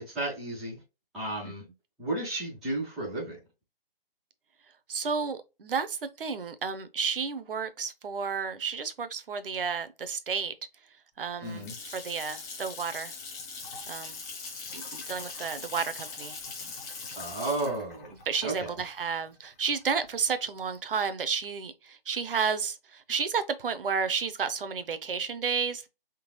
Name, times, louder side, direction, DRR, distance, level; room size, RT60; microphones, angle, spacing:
voice 1, 0.1-0.8 1.1-1.6 2.0-3.4 11.4-11.7 17.2-18.1 18.4-18.7, right 2 dB, ahead, 0.4 m, -33 dB
voice 2, 4.9-10.5 11.2-13.1 13.9-14.2 14.7-16.4 18.3-25.9, right 6 dB, 65° right, 0.8 m, -32 dB
Water tap faucet / Sink (filling or washing) / Splash splatter, 11.2-20.1, left 4 dB, 15° left, 0.8 m, -41 dB
3.8 x 3.2 x 3.0 m
hypercardioid pair, 155°, 30 cm